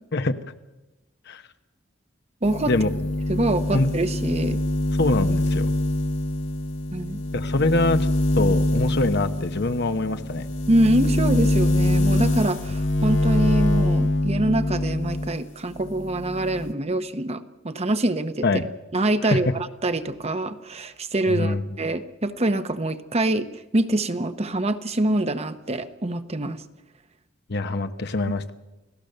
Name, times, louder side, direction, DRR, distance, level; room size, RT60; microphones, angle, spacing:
voice 1, 0.1-0.5 1.3-1.4 2.7-2.9 3.7-3.9 5.0-5.7 7.3-8.1 8.4-10.5 18.4-18.7 19.2-19.5 21.3-21.6 27.5-28.5, left 2 dB, 60° left, 9 dB, 1.1 m, -24 dB
sound 1, 2.4-15.4 15.7-16.7, left 1 dB, 75° left, 2.2 m, -24 dB
voice 2, 2.4-2.7 3.3-4.6 6.9-7.2 10.7-18.5 18.9-26.6, right 1 dB, 35° right, 10 dB, 1.0 m, -25 dB
29.5 x 17.0 x 6.7 m, 1.1 s
head